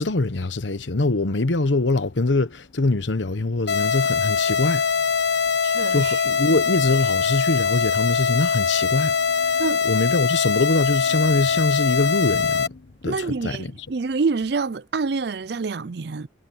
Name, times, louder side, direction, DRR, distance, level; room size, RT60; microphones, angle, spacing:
voice 1, 0.0-4.9 5.9-13.2 13.4-13.7, left 2 dB, 75° left, 1.0 m, -23 dB
sound 1, 3.7-12.7, left 6 dB, 60° left, 1.3 m, -22 dB
voice 2, 5.6-6.2 9.6-9.8 13.0-16.3, right 4 dB, 60° right, 0.5 m, -27 dB
head